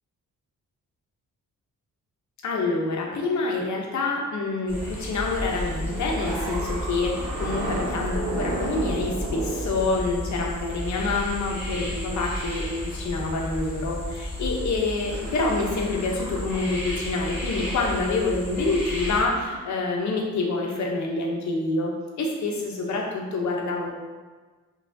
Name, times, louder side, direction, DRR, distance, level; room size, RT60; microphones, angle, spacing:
voice 1, 2.4-23.9, left 3 dB, 60° left, 0 dB, 0.7 m, -27 dB
sound 1, 4.7-19.2, equal, 5° right, 1.2 m, -33 dB
sound 2, 5.5-10.7 11.4-11.7 12.0-13.8 14.4-14.6 15.0-16.8 17.0-18.2 19.9-20.1, right 2 dB, 80° right, 0.9 m, -35 dB
4.7 x 3.2 x 2.6 m, 1.4 s
wide cardioid pair, 155°, 32 cm